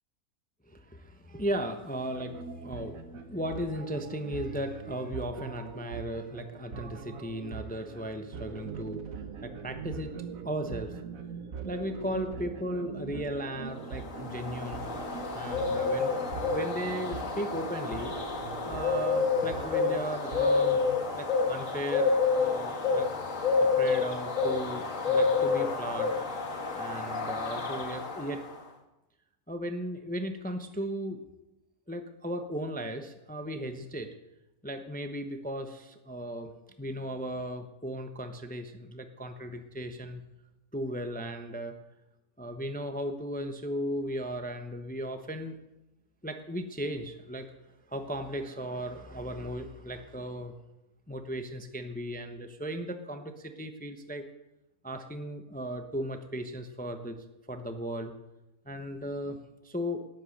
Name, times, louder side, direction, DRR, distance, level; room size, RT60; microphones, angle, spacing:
voice 1, 0.7-10.2 10.4-11.0 11.6-14.9 15.3-18.1 18.7-20.8 21.1-23.1 23.6-26.1 26.7-28.4 29.5-31.2 31.9-34.1 34.6-36.5 36.8-40.2 40.7-41.8 42.4-45.6 46.2-47.5 47.9-50.5 51.1-54.2 54.8-58.1 58.7-59.4 59.6-60.0, equal, 10° left, 7 dB, 0.7 m, -36 dB
sound 1, 2.1-21.0, right 5 dB, 70° right, 1.5 m, -42 dB
sound 2, 13.9-28.5, left 4 dB, 60° left, 2.1 m, -29 dB
18.5 x 8.4 x 6.5 m, 0.95 s
omnidirectional pair, 1.5 m